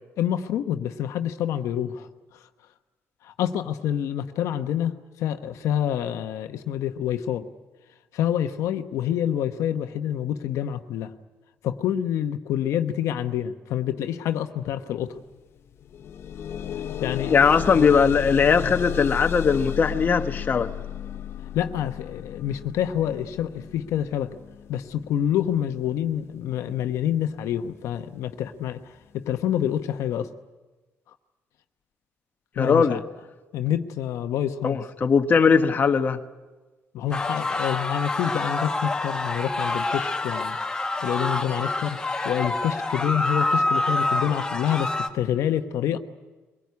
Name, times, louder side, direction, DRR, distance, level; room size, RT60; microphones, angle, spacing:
voice 1, 0.2-2.1 3.2-7.5 8.1-11.1 11.6-15.2 17.0-17.3 21.5-24.4 24.7-30.3 32.6-33.0 33.5-34.8 36.9-40.6 41.0-42.0 42.2-46.0, left 10 dB, 85° left, 8 dB, 1.0 m, -27 dB
sound 1, 15.1-15.2 15.6-26.6 27.4-27.5 28.0-28.1, left 10 dB, 55° left, 0.8 m, -34 dB
voice 2, 17.3-20.7 32.6-33.0 34.6-36.2, left 5 dB, 35° left, 6 dB, 1.0 m, -20 dB
sound 2, 37.1-45.1, left 2 dB, 15° left, 1.5 m, -27 dB
22.5 x 18.0 x 9.5 m, 1.2 s
cardioid pair, 130°, 5 cm